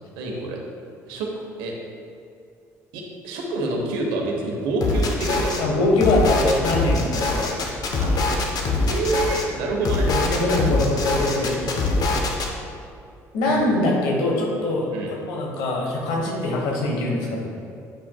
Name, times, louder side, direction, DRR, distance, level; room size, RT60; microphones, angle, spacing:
voice 1, 0.2-0.6 1.1-1.3 1.6-1.7 2.9-5.8 8.0-8.1 8.8-10.1 13.5-13.6 14.9-15.1, right 2 dB, 75° right, 0 dB, 1.0 m, -27 dB
sound 1, 4.8-5.6 6.0-9.4 9.8-12.5, left 2 dB, 50° left, 0.9 m, -23 dB
voice 2, 5.6-7.5 10.0-12.0 13.3-17.5, left 2 dB, 75° left, -2 dB, 1.2 m, -23 dB
7.4 x 5.9 x 2.3 m, 2.4 s
hypercardioid pair, 60°, 8 cm